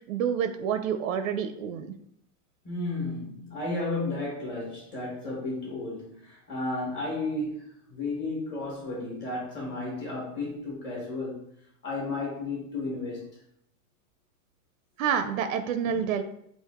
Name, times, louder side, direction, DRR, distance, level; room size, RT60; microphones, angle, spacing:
voice 1, 0.1-1.9 15.0-16.2, right 7 dB, 85° right, 9 dB, 0.5 m, -28 dB
voice 2, 2.6-11.4 11.8-13.3, left 2 dB, 25° left, -5 dB, 1.3 m, -33 dB
3.5 x 2.5 x 3.5 m, 0.71 s
supercardioid pair, 155°, 39 cm